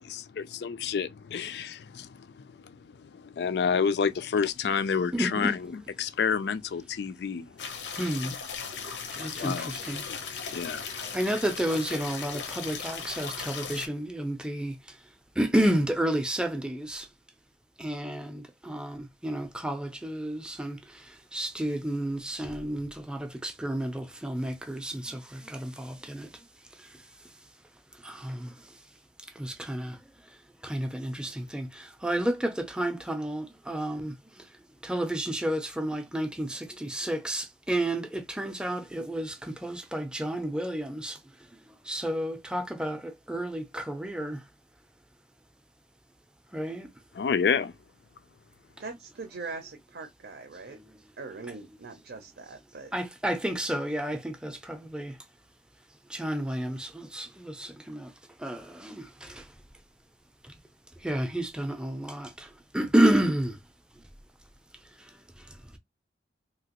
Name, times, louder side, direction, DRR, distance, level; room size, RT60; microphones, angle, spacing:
voice 1, 0.0-5.7 6.0-7.6 8.7-8.9 9.3-9.7 10.0-11.2 47.1-47.7, left 6 dB, 65° left, 0.4 m, -30 dB
voice 2, 5.1-5.6 7.9-8.3 9.1-10.0 10.5-15.0 15.4-17.1 17.8-26.4 26.7-27.0 27.9-28.8 29.3-30.0 30.3-30.4 30.6-34.5 34.8-41.2 41.5-44.4 46.5-46.9 50.7-51.0 52.9-55.2 56.1-58.1 58.4-59.5 60.4-60.5 61.0-63.6 65.0-65.8, right 1 dB, 5° right, 0.5 m, -31 dB
sound 1, 7.6-13.9, left 6 dB, 90° left, 0.8 m, -37 dB
voice 3, 48.8-50.8 51.2-52.9, right 3 dB, 70° right, 0.6 m, -41 dB
2.9 x 2.9 x 2.9 m
head